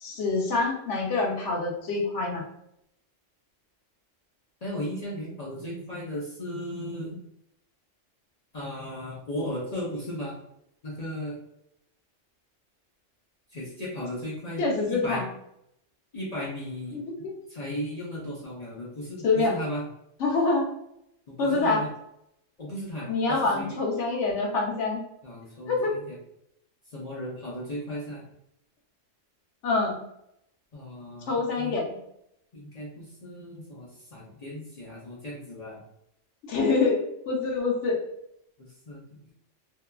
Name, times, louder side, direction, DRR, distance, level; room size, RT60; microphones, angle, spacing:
voice 1, 0.0-2.4 14.6-15.2 16.9-17.3 19.2-19.6 20.2-20.7 21.4-21.8 23.1-25.0 25.7-26.0 29.6-30.0 31.3-31.9 36.5-38.0, left 3 dB, 70° left, -1 dB, 1.0 m, -26 dB
voice 2, 4.6-7.2 8.5-10.3 10.8-11.4 13.5-15.2 16.1-17.0 17.5-19.8 21.3-21.9 22.6-23.7 25.2-26.2 26.9-28.2 30.7-31.8 32.5-35.8 38.9-39.0, equal, 45° left, -6 dB, 0.5 m, -36 dB
2.7 x 2.3 x 2.2 m, 0.79 s
omnidirectional pair, 1.3 m